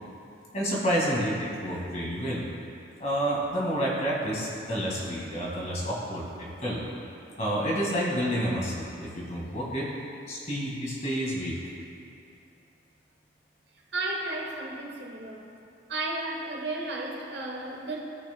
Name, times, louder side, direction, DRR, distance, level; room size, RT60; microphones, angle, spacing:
voice 1, 0.5-2.4 3.0-6.8 7.4-9.9 10.3-11.6, equal, 35° left, -4 dB, 1.8 m, -29 dB
voice 2, 13.9-15.5 15.9-18.0, right 2 dB, 70° right, -1 dB, 1.2 m, -33 dB
14.5 x 6.3 x 2.2 m, 2.6 s
head